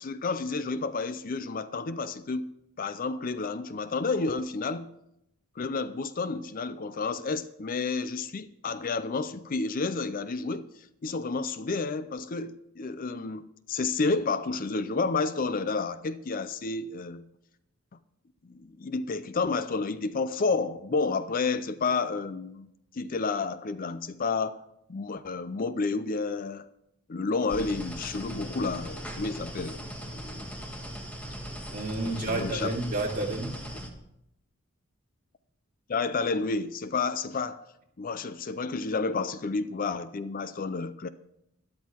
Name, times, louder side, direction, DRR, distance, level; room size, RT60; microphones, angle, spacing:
voice 1, 0.0-4.9 5.6-10.7 11.0-17.2 18.4-22.7 22.9-24.6 24.9-26.7 27.1-29.8 30.1-30.5 32.0-32.7 35.9-37.6 38.0-41.1, left 4 dB, 40° left, 0.5 m, -30 dB
sound 1, 27.5-33.9, equal, 5° left, 1.5 m, -39 dB
voice 2, 31.7-33.6, right 2 dB, 40° right, 2.4 m, -30 dB
12.5 x 11.5 x 4.5 m
head